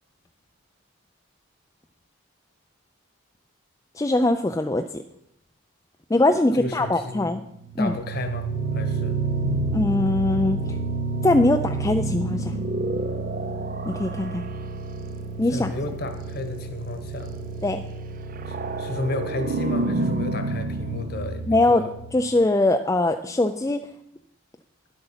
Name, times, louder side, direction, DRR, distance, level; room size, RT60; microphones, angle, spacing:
voice 1, 4.0-5.0 6.1-7.4 7.8-7.9 9.7-10.6 11.2-12.5 13.9-14.4 15.4-15.7 17.6-17.8 21.5-21.8 22.1-23.8, left 2 dB, 15° left, 6 dB, 0.3 m, -21 dB
voice 2, 6.5-7.3 7.8-8.5 8.7-9.2 15.5-17.3 18.5-21.9, left 2 dB, 45° left, 7 dB, 1.3 m, -32 dB
sound 1, 7.6-22.3, right 3 dB, 40° right, 0.5 m, -29 dB
11.0 x 7.9 x 5.7 m, 0.77 s
head